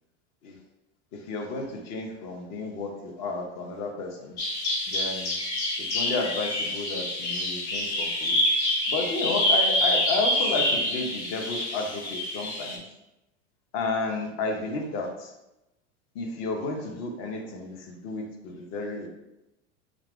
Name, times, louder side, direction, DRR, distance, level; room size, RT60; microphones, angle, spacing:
voice 1, 1.1-4.4 4.9-5.4 5.8-8.4 8.9-12.8 13.7-15.3 16.1-19.1, left 3 dB, 45° left, 2 dB, 0.7 m, -32 dB
Bird vocalization bird call bird song, 4.4-12.8, left 1 dB, 65° left, 1.1 m, -27 dB
2.5 x 2.3 x 3.5 m, 0.94 s
hypercardioid pair, 95°, 37 cm